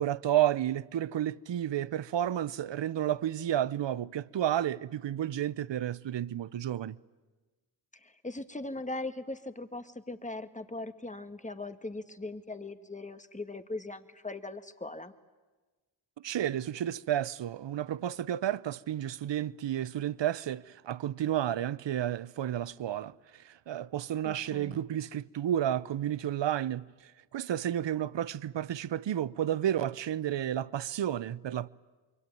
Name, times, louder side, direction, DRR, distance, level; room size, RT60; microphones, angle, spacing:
voice 1, 0.0-7.0 16.2-31.7, right 11 dB, 60° right, 0.8 m, -31 dB
voice 2, 7.9-15.1 24.2-24.8, left 2 dB, 15° left, 1.8 m, -40 dB
26.5 x 22.5 x 9.3 m
supercardioid pair, 45°, 49 cm